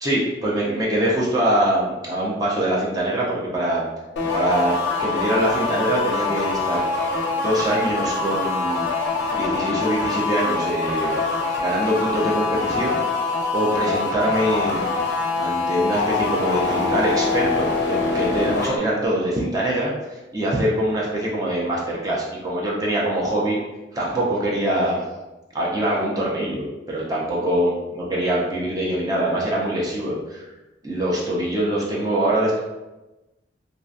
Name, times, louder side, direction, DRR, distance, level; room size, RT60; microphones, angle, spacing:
voice 1, 0.0-3.9 4.3-4.7 5.0-6.8 7.3-8.8 9.3-11.1 11.6-13.0 13.5-14.9 15.4-23.6 23.9-25.0 25.5-30.5 30.8-32.6, right 1 dB, 20° right, -5 dB, 0.4 m, -23 dB
sound 1, 4.2-18.8, left 3 dB, 70° left, 0.4 m, -24 dB
2.3 x 2.2 x 2.5 m, 1.1 s
head